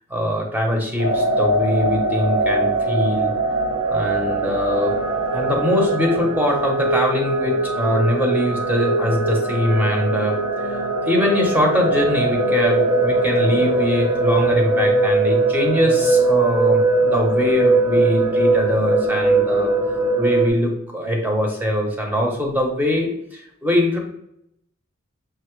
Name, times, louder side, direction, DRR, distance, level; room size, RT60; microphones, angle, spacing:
voice 1, 0.1-3.3 3.9-4.9 5.3-10.4 10.6-19.7 20.2-24.1, left 1 dB, 10° right, 0 dB, 0.9 m, -22 dB
sound 1, 1.0-20.5, right 2 dB, 70° right, 1.2 m, -20 dB
5.7 x 2.8 x 3.1 m, 0.76 s
head